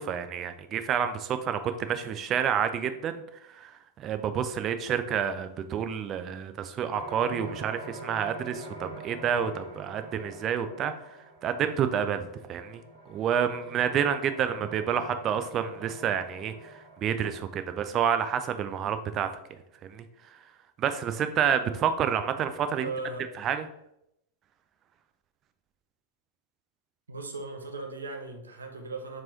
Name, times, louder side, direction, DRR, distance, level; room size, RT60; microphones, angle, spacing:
voice 1, 0.0-3.2 3.5-3.7 4.0-10.9 11.4-12.8 13.1-19.3 19.8-20.0 20.8-22.9 23.4-23.6, right 8 dB, 30° right, 9 dB, 0.4 m, -29 dB
sound 1, 6.9-18.4, right 2 dB, 55° right, 1.5 m, -46 dB
voice 2, 22.8-23.3 27.1-29.2, right 3 dB, 75° right, 4 dB, 0.7 m, -37 dB
4.5 x 3.1 x 3.9 m, 0.80 s
figure-of-eight pair, 90°, 0 cm